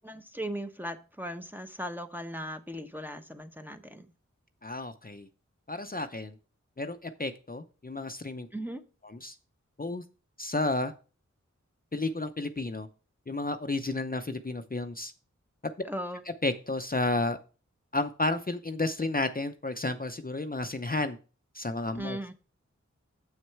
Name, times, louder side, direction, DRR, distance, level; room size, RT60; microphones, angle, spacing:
voice 1, 0.0-4.1 8.5-8.8 15.8-16.2 21.9-22.3, equal, 5° right, 5 dB, 0.9 m, -38 dB
voice 2, 4.6-5.3 5.7-6.4 6.8-8.5 9.0-9.4 9.8-10.0 10.4-10.9 11.9-12.9 13.3-15.1 16.4-17.4 17.9-21.2 21.5-22.3, left 2 dB, 30° left, 7 dB, 0.7 m, -32 dB
7.3 x 6.3 x 4.6 m, 0.35 s
wide cardioid pair, 45°, 30 cm